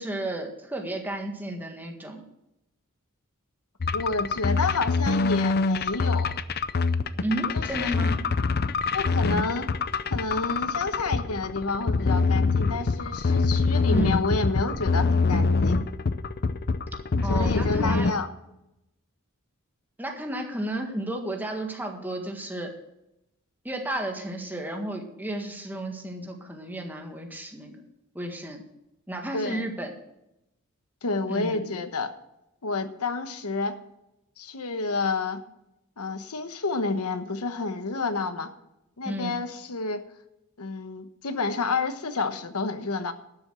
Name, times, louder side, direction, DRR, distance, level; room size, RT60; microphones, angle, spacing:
voice 1, 0.0-2.2 7.2-8.2 13.9-14.1 17.2-18.1 20.0-22.7 23.7-27.8 28.2-28.6 29.1-29.9 31.3-31.7 39.0-39.4, right 1 dB, 10° right, 2 dB, 1.7 m, -32 dB
sound 1, 3.8-18.1, left 4 dB, 45° left, 0.5 m, -25 dB
voice 2, 3.9-6.4 7.5-7.9 8.9-9.7 10.1-15.8 17.2-18.3 29.3-29.6 31.0-32.1 32.6-33.8 34.4-35.4 36.0-38.5 39.0-40.0 40.6-43.1, left 3 dB, 90° left, 9 dB, 1.1 m, -29 dB
12.5 x 7.0 x 6.2 m, 0.85 s
head